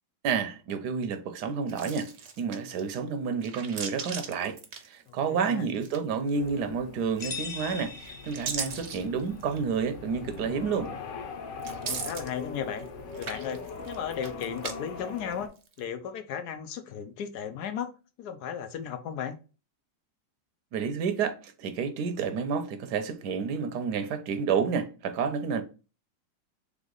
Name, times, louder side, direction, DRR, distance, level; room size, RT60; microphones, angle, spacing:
voice 1, 0.2-2.1 2.4-4.6 4.8-10.9 20.7-25.6, right 6 dB, 75° right, 1.2 m, -30 dB
sound 1, 1.7-2.9 3.3-5.4 5.7-6.4 7.2-7.7 8.1-9.7 10.3-10.4 11.6-12.9 13.1-14.7 15.0-15.8, right 6 dB, 50° right, 0.8 m, -38 dB
voice 2, 5.3-5.6 11.7-12.9 13.2-15.5 15.8-17.9 18.2-19.4, left 8 dB, 70° left, 1.1 m, -35 dB
sound 2, 6.3-15.5, left 4 dB, 85° left, 1.6 m, -41 dB
sound 3, 7.2-9.0, left 4 dB, 30° left, 0.6 m, -40 dB
3.6 x 3.6 x 3.8 m
omnidirectional pair, 1.8 m